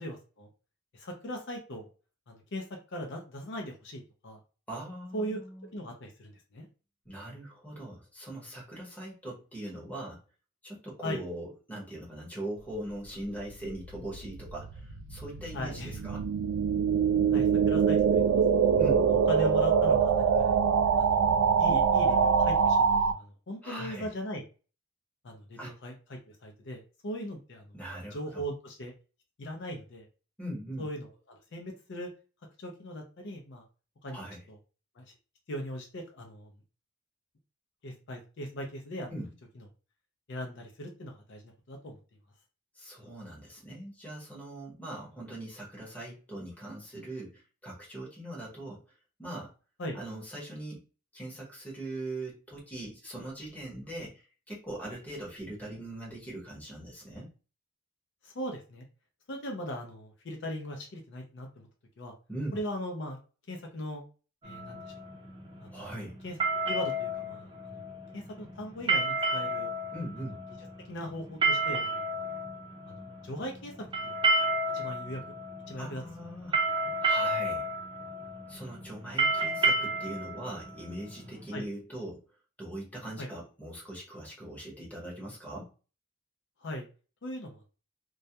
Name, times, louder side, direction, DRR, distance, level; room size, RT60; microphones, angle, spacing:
voice 1, 0.0-0.5 0.9-1.9 2.3-4.4 5.1-5.4 5.7-6.7 11.0-11.2 15.5-16.0 17.3-18.8 19.1-20.6 21.0-24.4 25.2-27.8 28.1-28.9 29.4-30.1 30.8-32.1 32.6-33.6 34.0-34.6 35.0-35.1 35.5-36.5 37.8-39.1 39.6-39.7 40.3-41.4 41.7-42.0 49.8-50.0 58.2-58.8 59.3-61.7 62.0-62.1 62.5-63.2 63.5-64.0 64.4-64.9 65.6-65.7 66.2-66.4 66.7-67.8 68.1-69.7 70.9-72.1 72.9-73.7 74.0-74.1 74.7-75.2 75.7-76.0 76.8-76.9 81.5-81.7 83.2-83.3 86.6-86.8 87.2-87.7, equal, 55° left, 2 dB, 0.5 m, -39 dB
voice 2, 4.7-5.7 7.0-10.2 10.6-16.3 18.7-19.1 23.6-24.1 25.6-25.8 27.7-28.4 30.4-30.9 34.1-34.4 39.1-39.3 42.7-48.9 49.2-49.5 49.9-50.8 51.1-57.3 62.3-62.6 65.7-66.2 69.9-70.4 75.8-76.6 77.0-77.7 78.5-82.2 82.6-85.7, right 1 dB, 5° left, -3 dB, 0.8 m, -41 dB
sound 1, 13.8-23.1, right 6 dB, 90° right, 0.3 m, -24 dB
sound 2, 64.4-81.6, right 2 dB, 25° right, 0.5 m, -31 dB
2.3 x 2.1 x 2.7 m, 0.35 s
head